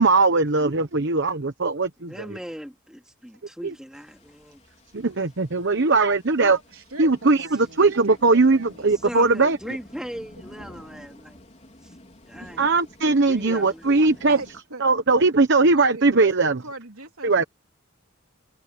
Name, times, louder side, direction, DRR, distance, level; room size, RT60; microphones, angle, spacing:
voice 1, 0.0-2.1 3.6-3.7 4.9-6.6 7.0-9.6 12.6-14.4 14.8-16.6 17.2-17.4, right 3 dB, 55° right, 1.0 m, -20 dB
voice 2, 2.1-4.6 9.0-11.4 11.8-11.9 12.2-12.8 13.2-13.9, equal, 5° right, 2.5 m, -38 dB
sound 1, 3.9-14.6, left 1 dB, 30° left, 3.9 m, -50 dB
voice 3, 6.4-9.0 12.4-12.7 14.3-14.8 15.7-16.1 16.6-17.5, right 2 dB, 75° right, 3.6 m, -40 dB
head